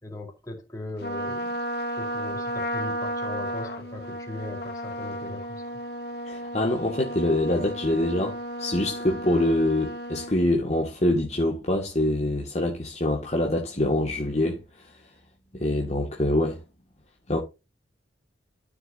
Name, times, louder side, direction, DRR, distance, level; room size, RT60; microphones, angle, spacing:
voice 1, 0.0-1.6 2.0-5.8, left 2 dB, 20° left, 4.3 m, -39 dB
Trumpet, 1.0-10.3, equal, 60° left, 2.5 m, -33 dB
voice 2, 6.3-14.9 15.5-16.6 17.3-17.4, left 1 dB, 35° left, 2.0 m, -25 dB
13.5 x 7.1 x 2.7 m
head